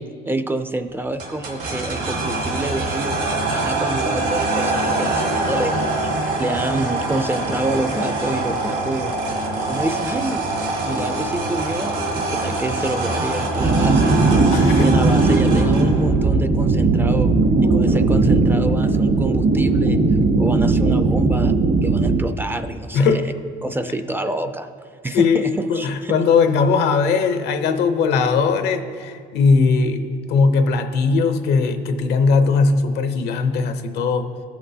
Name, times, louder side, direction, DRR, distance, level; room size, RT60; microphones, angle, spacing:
voice 1, 0.0-6.1 6.4-9.1 9.7-10.5 10.8-14.1 14.8-17.4 17.6-20.0 20.4-23.2 23.6-24.7 25.0-26.2, right 2 dB, 10° right, 9 dB, 0.3 m, -27 dB
sound 1, 1.2-16.0, right 2 dB, 75° right, 2.0 m, -24 dB
sound 2, 13.6-22.2, right 3 dB, 45° right, 0.7 m, -17 dB
voice 2, 14.5-14.9 22.9-23.3 25.1-34.3, left 4 dB, 80° left, 8 dB, 0.7 m, -19 dB
15.0 x 5.9 x 2.7 m, 2.2 s
cardioid pair, 110°, 17 cm